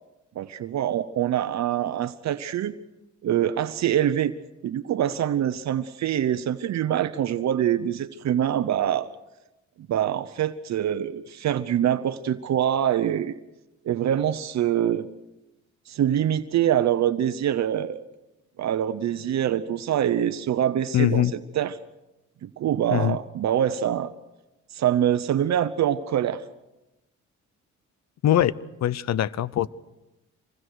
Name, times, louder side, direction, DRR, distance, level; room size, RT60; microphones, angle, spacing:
voice 1, 0.4-2.7 3.2-4.3 4.6-9.1 9.9-13.3 13.8-15.1 15.9-18.0 18.6-21.8 22.4-24.1 24.7-26.4, right 10 dB, 65° right, 12 dB, 0.9 m, -24 dB
voice 2, 20.9-21.3 22.9-23.2 28.2-28.5 28.8-29.7, left 12 dB, 60° left, 20 dB, 0.8 m, -22 dB
26.0 x 20.5 x 6.4 m, 0.97 s
cardioid pair, 90°, 30 cm